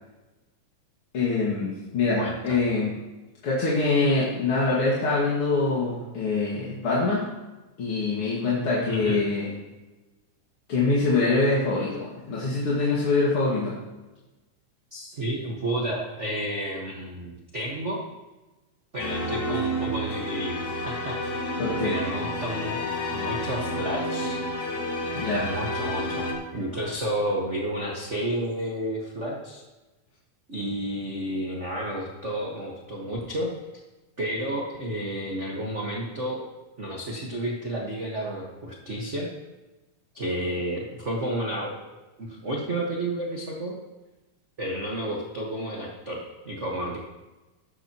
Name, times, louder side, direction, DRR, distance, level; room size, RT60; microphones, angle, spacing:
voice 1, 1.1-2.9 3.4-7.3 7.8-9.5 10.7-13.8 21.6-22.0 25.1-25.5, left 3 dB, 45° left, -6 dB, 2.5 m, -24 dB
voice 2, 2.2-2.6 8.9-9.2 14.9-18.0 18.9-22.8 23.1-24.4 25.3-29.6 30.5-33.5 34.2-36.4 36.8-39.3 40.1-41.8 42.2-43.7 44.6-47.0, right 1 dB, 45° right, -2 dB, 0.9 m, -31 dB
sound 1, 19.0-26.3, left 1 dB, 70° left, 3.7 m, -30 dB
15.5 x 12.0 x 3.0 m, 1.1 s
omnidirectional pair, 3.7 m